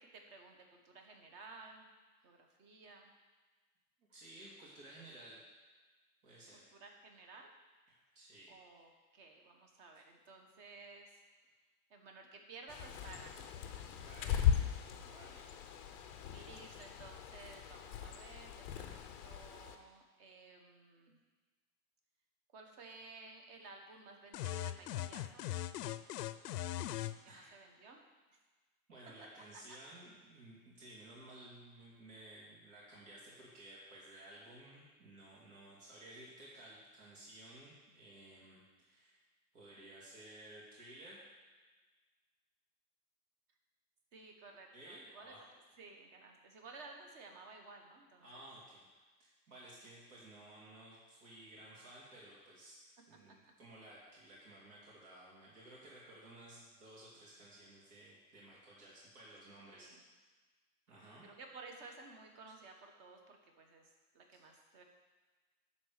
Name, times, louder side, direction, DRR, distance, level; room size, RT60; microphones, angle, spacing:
voice 1, 0.0-1.9 2.2-3.1 6.5-7.5 8.5-11.2 11.9-13.5 14.1-14.6 16.3-21.2 22.5-25.5 26.7-28.0 44.1-45.4 45.8-48.5 53.1-53.4 59.6-60.0 61.2-64.8, right 3 dB, 35° right, 3 dB, 1.5 m, -55 dB
voice 2, 4.1-5.4 6.2-6.6 7.9-8.5 14.0-14.4 14.9-15.4 27.3-27.5 28.9-39.2 39.5-41.3 44.7-45.4 48.2-59.9 60.9-61.3, right 1 dB, 70° right, -6 dB, 3.4 m, -55 dB
Bird, 12.7-19.7, left 9 dB, 25° left, 0.5 m, -38 dB
sound 1, 24.3-27.2, left 13 dB, 90° left, 0.6 m, -39 dB
11.0 x 4.3 x 6.7 m, 1.3 s
supercardioid pair, 155°, 46 cm